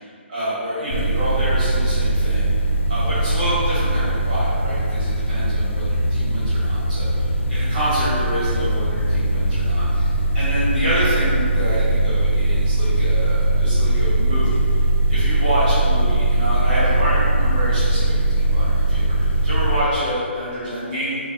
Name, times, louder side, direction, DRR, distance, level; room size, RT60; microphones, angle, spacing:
voice 1, 0.3-2.5 2.9-14.5 15.1-21.2, equal, 40° right, -11 dB, 1.1 m, -27 dB
sound 1, 0.9-19.8, right 2 dB, 80° left, 0.3 m, -20 dB
3.1 x 2.1 x 2.8 m, 2.3 s
hypercardioid pair, 165°, 7 cm